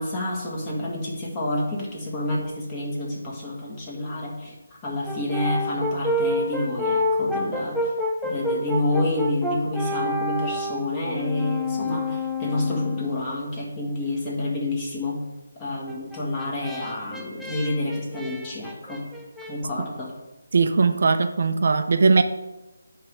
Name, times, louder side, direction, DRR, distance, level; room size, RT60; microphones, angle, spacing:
voice 1, 0.0-7.9 8.2-15.2 15.6-19.0 19.5-20.1, left 1 dB, 20° left, -3 dB, 1.6 m, -28 dB
Brass instrument, 5.0-13.4 15.9-19.5, left 1 dB, ahead, 0.5 m, -28 dB
voice 2, 20.5-22.2, right 4 dB, 55° right, 8 dB, 0.5 m, -19 dB
9.2 x 3.4 x 6.6 m, 1.0 s
figure-of-eight pair, 165°, 0 cm